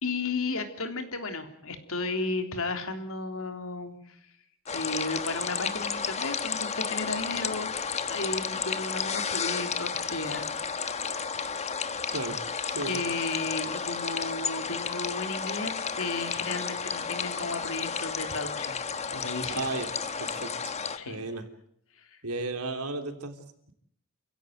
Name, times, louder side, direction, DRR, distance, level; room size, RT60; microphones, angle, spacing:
voice 1, 0.0-4.2 4.7-7.7 8.1-10.5 12.9-18.8 19.1-19.7 21.0-21.2 22.0-22.2, left 3 dB, 65° left, 6 dB, 3.5 m, -34 dB
sound 1, 4.7-21.0, left 6 dB, 30° left, 1.3 m, -32 dB
voice 2, 19.5-19.9 20.2-20.7 21.1-21.5 22.2-23.7, right 3 dB, 80° right, 7 dB, 3.4 m, -34 dB
29.0 x 16.0 x 9.2 m, 0.71 s
head